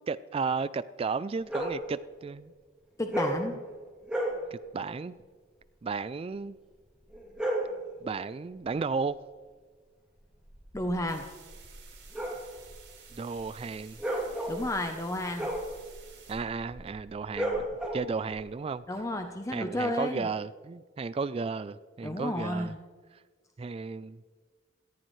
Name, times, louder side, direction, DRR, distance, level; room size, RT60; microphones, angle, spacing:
voice 1, 0.1-2.5 4.5-5.2 5.8-6.6 8.0-9.2 13.1-14.0 16.3-17.7 17.9-18.8 19.5-22.7 23.6-24.2, right 4 dB, 30° right, 17 dB, 0.3 m, -34 dB
sound 1, 1.4-1.8 3.1-3.5 4.0-4.4 7.1-7.8 10.3-18.4, right 1 dB, 5° right, 2.8 m, -34 dB
voice 2, 3.0-3.6 10.7-11.3 14.5-15.5 18.9-20.3 22.0-22.8, left 1 dB, 15° left, 5 dB, 0.7 m, -32 dB
sound 2, 11.1-16.3, right 7 dB, 90° right, 5.2 m, -54 dB
18.0 x 15.0 x 3.2 m, 1.5 s
head